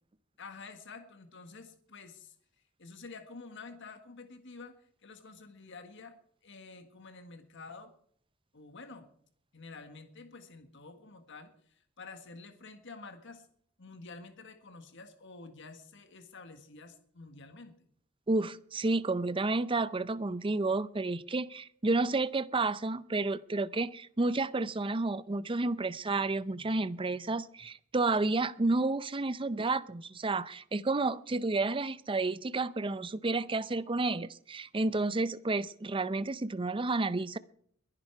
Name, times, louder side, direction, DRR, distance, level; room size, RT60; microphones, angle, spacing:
voice 1, 0.4-2.3 2.8-4.8 5.0-6.2 6.4-7.9 8.5-9.1 9.5-13.5 13.8-17.9, left 4 dB, 60° left, 1.7 m, -49 dB
voice 2, 18.3-37.4, right 3 dB, 25° right, 0.6 m, -31 dB
22.0 x 11.0 x 4.7 m
head